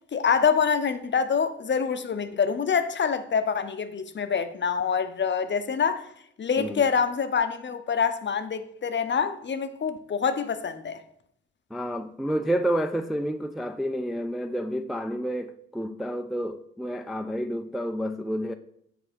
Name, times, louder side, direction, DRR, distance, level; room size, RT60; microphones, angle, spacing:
voice 1, 0.1-6.1 6.4-11.0, left 6 dB, 40° left, 0.7 m, -26 dB
voice 2, 11.7-18.6, equal, ahead, 0.3 m, -29 dB
6.7 x 4.2 x 4.3 m
hypercardioid pair, 45°, 30 cm